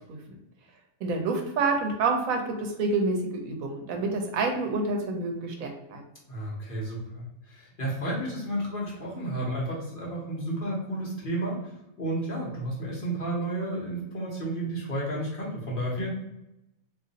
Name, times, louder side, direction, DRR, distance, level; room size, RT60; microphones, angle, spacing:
voice 1, 1.0-6.0, right 3 dB, 75° right, 3 dB, 1.0 m, -28 dB
voice 2, 6.3-16.1, right 1 dB, 40° left, -5 dB, 1.0 m, -32 dB
2.7 x 2.5 x 3.9 m, 0.87 s
omnidirectional pair, 1.5 m